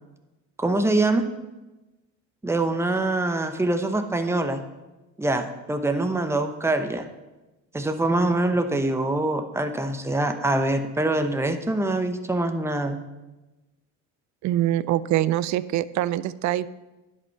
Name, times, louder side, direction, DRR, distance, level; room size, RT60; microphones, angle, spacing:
voice 1, 0.6-1.3 2.4-4.6 5.2-7.1 7.7-13.0, right 2 dB, 10° right, 7 dB, 0.7 m, -24 dB
voice 2, 14.4-16.7, right 13 dB, 60° right, 18 dB, 0.4 m, -24 dB
11.0 x 5.3 x 5.7 m, 1.1 s
cardioid pair, 120°, 34 cm